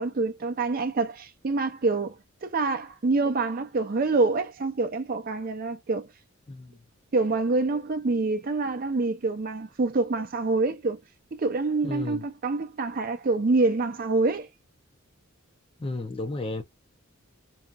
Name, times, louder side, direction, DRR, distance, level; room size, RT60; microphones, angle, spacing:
voice 1, 0.0-2.2 2.4-6.1 7.1-11.0 11.3-14.5, right 3 dB, 40° right, 0.5 m, -26 dB
voice 2, 6.5-6.8 11.8-12.3 15.8-16.6, left 2 dB, 25° left, 0.4 m, -33 dB
2.7 x 2.3 x 2.4 m
head